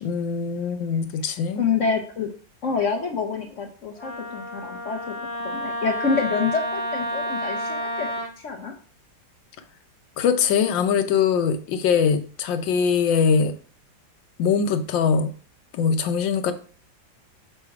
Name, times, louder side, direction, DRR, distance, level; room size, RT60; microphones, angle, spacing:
voice 1, 0.0-1.6 10.2-13.5 14.4-15.3 15.7-16.5, left 6 dB, 80° left, 9 dB, 1.4 m, -22 dB
voice 2, 1.6-2.3 2.6-8.1 8.4-8.7, left 5 dB, 55° left, 4 dB, 0.9 m, -27 dB
Wind instrument woodwind instrument, 4.0-8.3, equal, 35° left, 1.2 m, -30 dB
6.4 x 3.3 x 4.7 m, 0.41 s
omnidirectional pair, 2.0 m